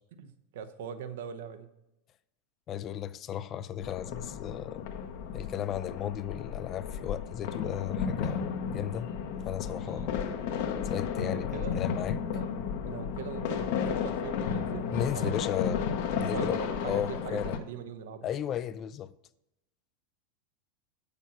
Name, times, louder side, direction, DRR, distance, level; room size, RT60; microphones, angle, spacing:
voice 1, 0.2-1.7 9.8-10.1 11.3-11.8 12.3-12.5 12.9-15.3 16.1-18.3, right 7 dB, 65° right, 0.8 m, -41 dB
voice 2, 2.7-4.8 5.3-9.1 9.5-10.2 10.8-12.2 14.9-15.8 16.1-16.6 16.8-17.6 18.2-19.1, left 10 dB, 35° left, 0.4 m, -35 dB
sound 1, 3.8-17.6, left 7 dB, 60° left, 0.9 m, -33 dB
8.1 x 6.7 x 5.8 m
figure-of-eight pair, 85°, 0 cm